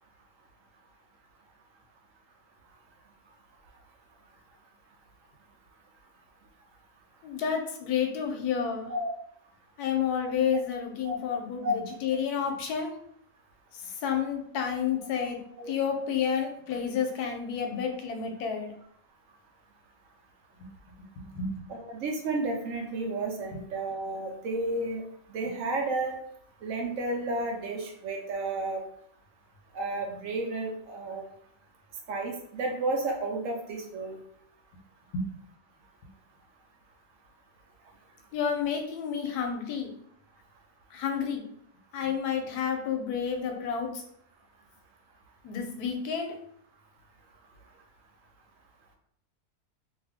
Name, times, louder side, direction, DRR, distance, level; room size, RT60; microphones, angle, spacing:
voice 1, 7.2-8.9 9.8-12.9 13.7-15.4 15.7-18.7 21.2-21.7 23.5-23.6 35.1-35.2 38.3-39.9 40.9-41.4 41.9-44.0 45.4-46.4, left 7 dB, 90° left, 4 dB, 1.1 m, -30 dB
voice 2, 21.7-25.0 25.3-26.2 26.6-28.8 29.7-31.2 32.1-34.2 43.5-43.6, right 2 dB, 70° right, 1 dB, 0.8 m, -32 dB
2.7 x 2.3 x 3.4 m, 0.67 s
omnidirectional pair, 1.6 m